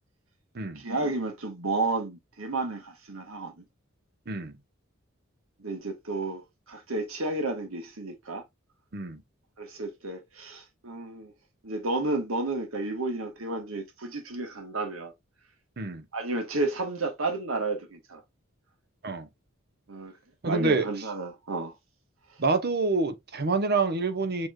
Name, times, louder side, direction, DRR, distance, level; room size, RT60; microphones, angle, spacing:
voice 1, 0.8-3.6 5.6-8.4 9.6-11.3 11.6-15.1 16.1-18.2 19.9-20.1 20.4-21.7, right 2 dB, 75° right, 1.4 m, -32 dB
voice 2, 4.3-4.6 8.9-9.2 15.8-16.1 19.0-19.3 20.4-20.9 22.4-24.5, right 3 dB, 50° right, 0.9 m, -27 dB
7.0 x 3.1 x 2.4 m
head